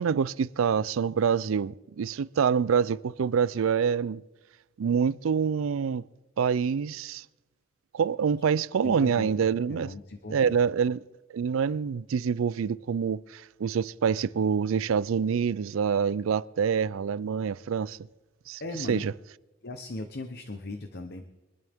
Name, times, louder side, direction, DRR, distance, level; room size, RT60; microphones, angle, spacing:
voice 1, 0.0-4.2 4.8-6.0 6.4-7.2 7.9-9.9 10.3-11.0 11.3-18.0 18.5-18.6 18.9-19.1, right 6 dB, 85° right, 0.4 m, -26 dB
voice 2, 8.8-10.6 18.6-19.1 19.6-21.3, left 2 dB, 55° left, 0.9 m, -38 dB
23.5 x 12.5 x 3.6 m
head